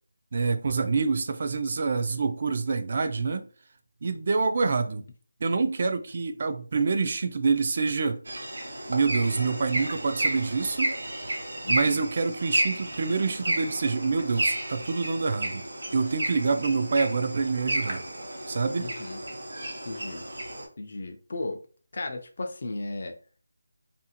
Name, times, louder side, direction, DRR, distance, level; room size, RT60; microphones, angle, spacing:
voice 1, 0.3-3.5 4.0-5.0 5.4-8.2 8.9-10.9 11.7-15.6 15.9-18.0 18.5-18.9, right 4 dB, 35° right, 0.3 m, -26 dB
sound 1, 8.3-20.7, right 1 dB, 65° right, 1.0 m, -32 dB
voice 2, 11.6-11.9 18.8-19.2 19.8-20.2 20.8-21.6 21.9-23.1, left 2 dB, 45° left, 0.4 m, -35 dB
2.5 x 2.4 x 2.7 m
figure-of-eight pair, 170°, 0 cm